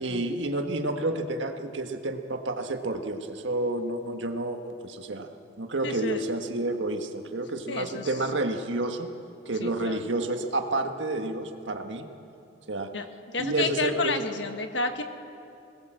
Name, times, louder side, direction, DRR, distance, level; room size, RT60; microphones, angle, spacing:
voice 1, 0.0-5.3 5.6-9.1 9.4-12.0 12.7-12.9 13.4-14.2, right 2 dB, 80° right, 5 dB, 1.6 m, -30 dB
voice 2, 5.8-6.2 7.7-8.2 9.6-10.1 12.9-15.0, left 3 dB, 75° left, 7 dB, 1.5 m, -31 dB
21.5 x 18.5 x 7.7 m, 2.6 s
head